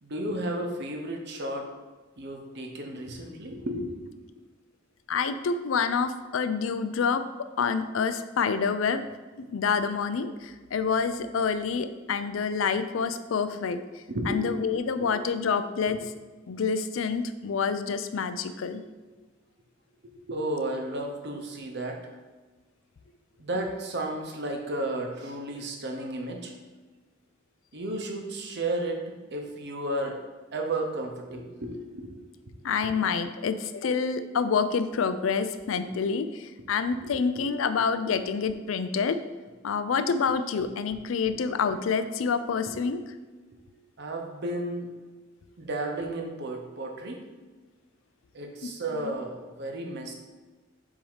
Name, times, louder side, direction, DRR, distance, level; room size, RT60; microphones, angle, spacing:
voice 1, 0.0-1.7 2.2-4.0 14.1-14.5 14.7-15.1 15.9-16.0 20.0-22.0 23.4-26.5 27.7-30.2 30.5-32.1 32.5-32.6 37.0-37.7 38.0-38.1 42.6-42.8 44.0-44.9 45.6-47.2 48.3-50.1, right 1 dB, 60° right, 2 dB, 0.9 m, -33 dB
voice 2, 5.1-7.2 7.6-9.0 9.5-16.1 16.5-18.8 32.6-39.2 39.6-43.0 48.6-49.1, left 5 dB, 75° left, 10 dB, 0.4 m, -27 dB
7.2 x 2.8 x 4.8 m, 1.3 s
head